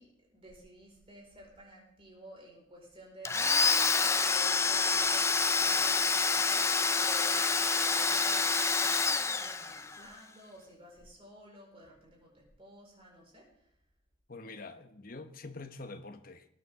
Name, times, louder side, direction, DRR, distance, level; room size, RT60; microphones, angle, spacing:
voice 1, 0.0-13.7, equal, 30° right, 4.7 m, -52 dB
Domestic sounds home sounds, 3.3-10.0, left 4 dB, 15° left, 0.4 m, -27 dB
voice 2, 14.3-16.5, left 3 dB, 45° left, 1.0 m, -45 dB
20.5 x 9.4 x 3.6 m
head